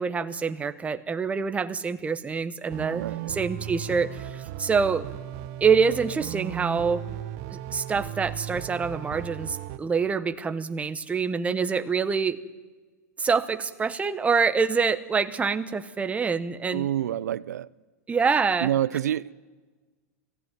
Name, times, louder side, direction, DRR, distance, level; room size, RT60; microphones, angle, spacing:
voice 1, 0.0-5.0 5.6-7.0 7.5-12.4 13.2-16.9 18.1-18.7, right 5 dB, 15° right, 1.0 m, -26 dB
sound 1, 2.7-9.8, right 13 dB, 50° right, 1.0 m, -36 dB
voice 2, 2.9-3.4 16.7-17.7 18.6-19.3, right 11 dB, 80° right, 0.5 m, -27 dB
21.0 x 15.5 x 9.4 m
hypercardioid pair, 115°, 9 cm